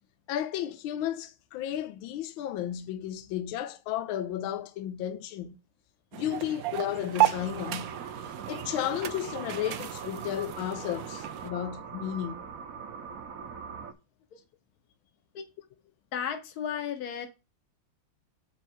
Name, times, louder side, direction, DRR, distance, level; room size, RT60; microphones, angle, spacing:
voice 1, 0.3-5.6 6.1-7.9 8.5-12.4, left 11 dB, 80° left, 1.4 m, -33 dB
sound 1, 6.1-11.5, right 13 dB, 70° right, 0.9 m, -33 dB
sound 2, 7.3-13.9, right 6 dB, 55° right, 1.2 m, -42 dB
voice 2, 16.1-17.3, left 8 dB, 55° left, 1.6 m, -34 dB
7.9 x 5.7 x 4.5 m
omnidirectional pair, 2.2 m